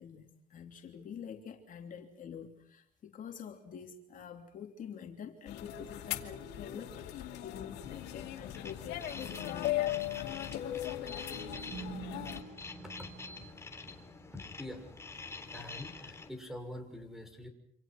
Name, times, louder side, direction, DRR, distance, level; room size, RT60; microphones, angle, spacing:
voice 1, 0.0-10.7 14.0-14.1, left 7 dB, 50° left, 3 dB, 3.2 m, -47 dB
sound 1, 5.5-12.4, left 14 dB, 85° left, 2.6 m, -38 dB
sound 2, 5.7-8.3 8.6-8.7 10.9-14.5, right 5 dB, 35° right, 1.5 m, -50 dB
sound 3, 7.8-16.3, left 3 dB, 15° left, 3.5 m, -47 dB
voice 2, 13.4-13.9 14.3-14.9 15.5-17.5, left 1 dB, ahead, 7 dB, 6.1 m, -46 dB
28.0 x 27.5 x 6.1 m, 0.71 s
cardioid pair, 110°, 17 cm